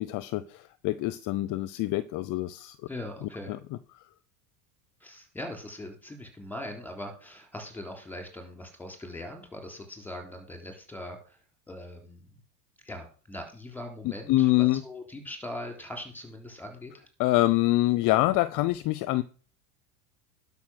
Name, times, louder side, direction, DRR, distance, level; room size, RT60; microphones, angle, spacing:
voice 1, 0.0-2.8 14.3-14.8 17.2-19.2, left 17 dB, 45° left, 0.6 m, -25 dB
voice 2, 2.9-3.6 5.0-11.4 11.7-12.4 12.8-17.1, left 1 dB, 5° left, 3.6 m, -41 dB
11.5 x 5.7 x 6.3 m
supercardioid pair, 115°, 46 cm